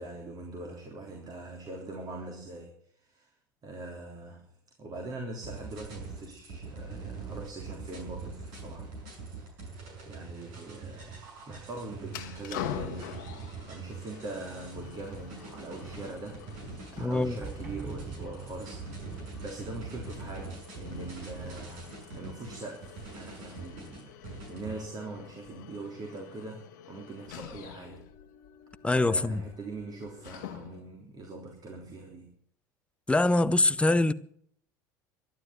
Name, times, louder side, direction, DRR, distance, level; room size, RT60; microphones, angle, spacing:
voice 1, 0.0-2.7 3.1-3.3 3.6-4.5 4.8-8.9 9.3-9.7 10.1-28.0 28.9-32.3, right 2 dB, 40° right, 3.5 m, -42 dB
sound 1, 5.4-24.7, right 4 dB, 70° right, 6.2 m, -43 dB
sound 2, 12.1-31.0, left 9 dB, 75° left, 1.3 m, -46 dB
Sliding door, 14.2-18.9, right 4 dB, 15° right, 5.3 m, -47 dB
voice 2, 17.0-17.4 28.8-29.4 33.1-34.1, left 2 dB, 10° left, 0.9 m, -24 dB
12.0 x 12.0 x 9.7 m
hypercardioid pair, 80°, 11 cm